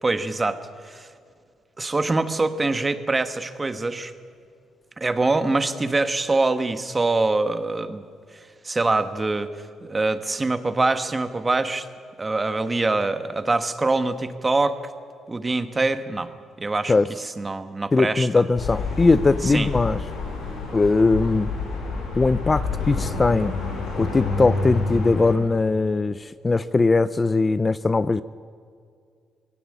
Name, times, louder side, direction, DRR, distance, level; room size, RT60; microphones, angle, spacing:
voice 1, 0.0-1.1 1.8-4.1 5.0-8.0 8.6-9.5 9.8-11.9 12.2-14.8 15.3-16.3 16.6-16.9 17.4-18.4 19.4-19.7, right 3 dB, 25° right, 10 dB, 1.4 m, -24 dB
voice 2, 17.9-20.0 20.7-21.5 22.2-23.5 24.0-28.2, left 3 dB, 25° left, 15 dB, 0.5 m, -20 dB
sound 1, 18.6-25.3, left 3 dB, 75° left, 7.8 m, -28 dB
21.5 x 17.5 x 8.6 m, 2.2 s
cardioid pair, 90°, 0 cm